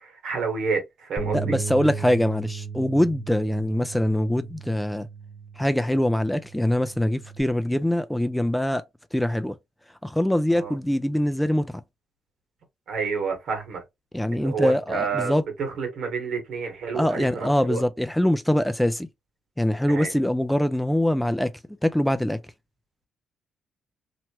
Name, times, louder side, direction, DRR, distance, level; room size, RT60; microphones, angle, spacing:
voice 1, 0.0-1.6 10.5-10.7 12.9-13.8 14.3-17.8 19.9-20.1, right 5 dB, 70° right, 1.5 m, -29 dB
Bass guitar, 1.2-7.4, right 5 dB, 25° left, 1.2 m, -36 dB
voice 2, 1.3-5.1 5.6-8.8 9.1-9.6 10.0-11.8 14.1-15.4 16.9-19.1 19.6-21.5 21.8-22.4, left 1 dB, 5° left, 0.3 m, -23 dB
3.0 x 2.2 x 2.9 m
cardioid pair, 90°, 0 cm